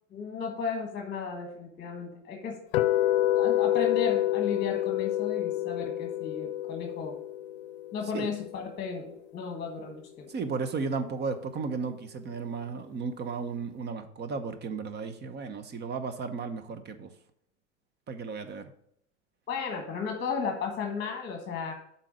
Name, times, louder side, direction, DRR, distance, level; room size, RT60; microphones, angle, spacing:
voice 1, 0.1-2.6 3.3-7.2 7.9-10.3 19.5-21.7, left 5 dB, 30° left, 4 dB, 1.4 m, -34 dB
sound 1, 2.7-8.8, left 14 dB, 65° left, 0.6 m, -28 dB
voice 2, 10.3-17.1 18.1-18.7, right 5 dB, 30° right, 10 dB, 1.0 m, -34 dB
7.5 x 4.2 x 6.4 m, 0.70 s
hypercardioid pair, 100°, 35 cm